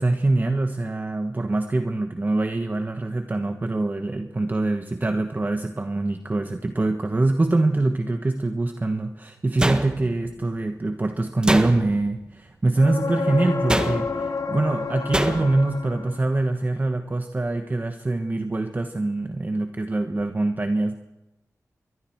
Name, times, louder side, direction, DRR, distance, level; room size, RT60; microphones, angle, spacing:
voice 1, 0.0-21.0, right 2 dB, 30° right, 6 dB, 1.2 m, -24 dB
sound 1, 9.6-10.3 11.4-12.1 13.7-14.3 15.1-15.7, right 1 dB, 15° right, 1.5 m, -25 dB
sound 2, 12.8-16.5 20.2-20.3, left 4 dB, 65° left, 1.2 m, -29 dB
27.0 x 22.0 x 4.6 m, 0.98 s
wide cardioid pair, 85°, 6 cm